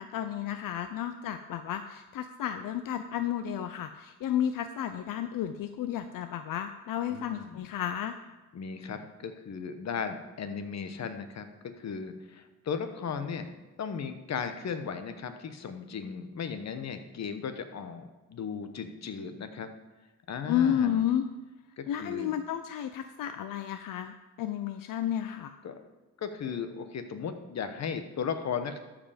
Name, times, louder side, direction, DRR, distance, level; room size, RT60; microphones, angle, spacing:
voice 1, 0.0-8.2 20.5-21.3 21.9-25.6, left 10 dB, 80° left, 9 dB, 0.5 m, -32 dB
voice 2, 7.1-7.6 8.5-13.5 13.8-19.7 20.3-21.1 21.8-22.3 25.6-25.8 26.2-28.8, left 6 dB, 55° left, 8 dB, 1.0 m, -36 dB
13.0 x 5.1 x 5.0 m, 1.1 s
cardioid pair, 105°, 32 cm